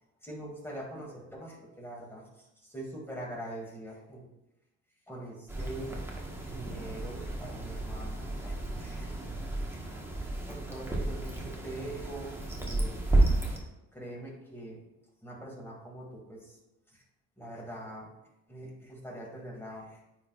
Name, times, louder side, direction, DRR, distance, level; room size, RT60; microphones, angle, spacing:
voice 1, 0.2-4.3 5.1-6.0 6.5-9.5 10.5-13.2 13.9-14.8 15.2-16.6 16.9-17.0 17.4-18.1 18.5-20.0, right 1 dB, 10° left, -3 dB, 2.3 m, -43 dB
sound 1, 5.5-13.6, right 2 dB, 10° right, 1.3 m, -32 dB
9.2 x 4.6 x 2.4 m, 0.92 s
cardioid pair, 90°, 30 cm